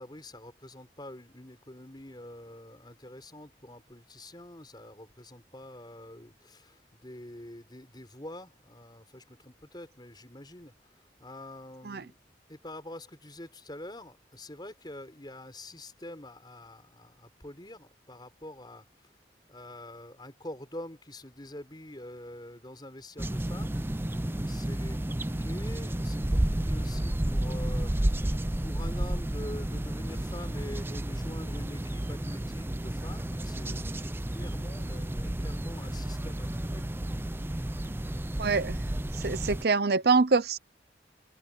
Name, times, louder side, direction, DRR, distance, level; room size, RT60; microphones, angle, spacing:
voice 1, 0.0-12.2 12.5-19.1 19.5-23.8 24.5-28.3 28.6-36.9, left 1 dB, 25° left, 4.6 m, -46 dB
sound 1, 23.2-39.6, right 1 dB, 15° right, 0.5 m, -31 dB
voice 2, 38.4-38.8 39.2-40.6, right 4 dB, 60° right, 0.7 m, -25 dB
head